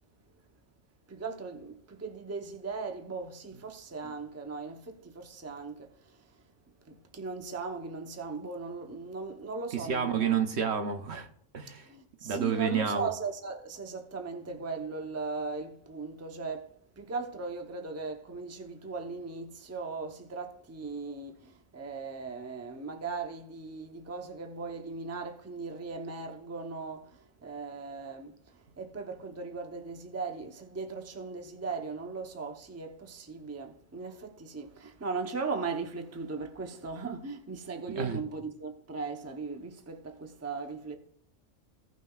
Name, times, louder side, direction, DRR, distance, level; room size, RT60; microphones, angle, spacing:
voice 1, 1.1-6.2 6.9-10.4 11.9-28.4 28.8-41.0, right 4 dB, 15° right, 0.7 m, -38 dB
voice 2, 9.7-11.3 11.5-11.9 12.2-13.1 37.9-38.2, right 7 dB, 60° right, 1.0 m, -29 dB
16.5 x 6.1 x 2.4 m
omnidirectional pair, 1.3 m